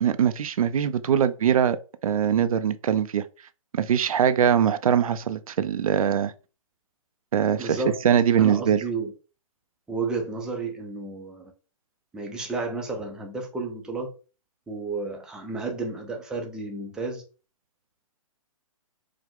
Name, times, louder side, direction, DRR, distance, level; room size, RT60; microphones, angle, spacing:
voice 1, 0.0-1.8 2.0-3.3 3.7-6.3 7.3-7.8 8.0-8.8, right 8 dB, 80° right, 0.5 m, -22 dB
voice 2, 7.6-8.0 8.4-9.1 9.9-11.5 12.1-14.1 14.7-17.2, right 3 dB, 5° right, 0.5 m, -31 dB
4.9 x 2.1 x 3.7 m
hypercardioid pair, 150°, 18 cm